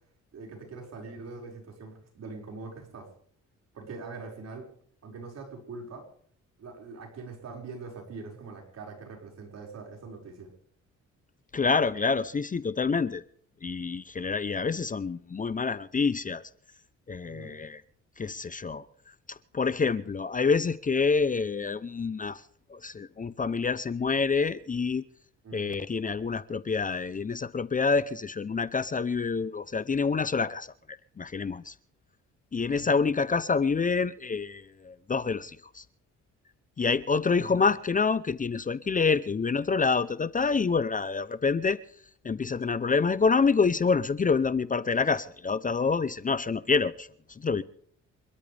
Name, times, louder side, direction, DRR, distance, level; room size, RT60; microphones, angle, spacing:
voice 1, 0.3-3.1 3.7-4.7 5.0-6.1 6.6-10.5 17.2-17.6 25.4-25.8 32.8-33.0 37.4-37.6, right 4 dB, 60° right, 5.6 m, -43 dB
voice 2, 11.5-13.2 13.6-16.4 17.1-17.8 18.2-18.8 19.3-22.4 22.7-25.0 25.5-31.7 32.5-35.8 36.8-41.8 42.2-47.6, left 5 dB, 25° left, 0.7 m, -27 dB
28.0 x 12.5 x 3.5 m
cardioid pair, 90°, 30 cm